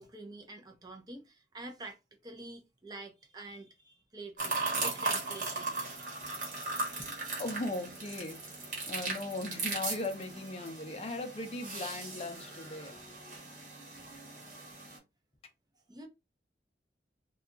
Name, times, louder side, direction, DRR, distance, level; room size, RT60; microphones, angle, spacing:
voice 1, 0.0-5.8 6.7-7.0 15.9-16.1, right 2 dB, 20° right, 0.5 m, -47 dB
sound 1, 4.4-15.0, right 3 dB, 45° right, 1.1 m, -38 dB
voice 2, 7.4-8.4 8.9-13.2, left 2 dB, 35° left, 0.5 m, -38 dB
2.7 x 2.3 x 2.5 m
head